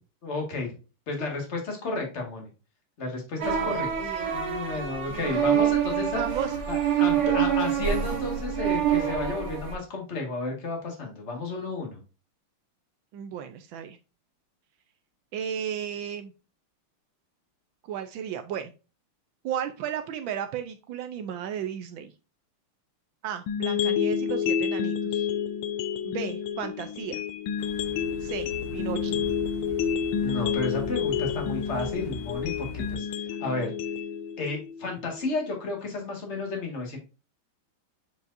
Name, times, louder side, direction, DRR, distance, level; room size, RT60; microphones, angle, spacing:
voice 1, 0.2-0.7 1.1-2.5 3.0-6.2 6.7-12.0 30.2-33.1 33.4-33.7 34.4-37.0, left 3 dB, 35° left, 1 dB, 1.9 m, -32 dB
sound 1, 3.4-9.7, right 9 dB, 50° right, 1.7 m, -26 dB
voice 2, 3.4-4.3 5.1-5.7 6.1-6.6 7.1-7.3 13.1-14.0 15.3-16.3 17.9-18.7 19.4-22.1 23.2-25.3 26.0-27.2 28.2-29.1, right 8 dB, 75° right, 7 dB, 1.2 m, -34 dB
sound 2, 23.5-35.5, left 7 dB, 75° left, 1.3 m, -29 dB
sound 3, 27.6-33.0, equal, 60° left, 1.6 m, -40 dB
7.9 x 4.7 x 2.6 m, 0.32 s
omnidirectional pair, 2.4 m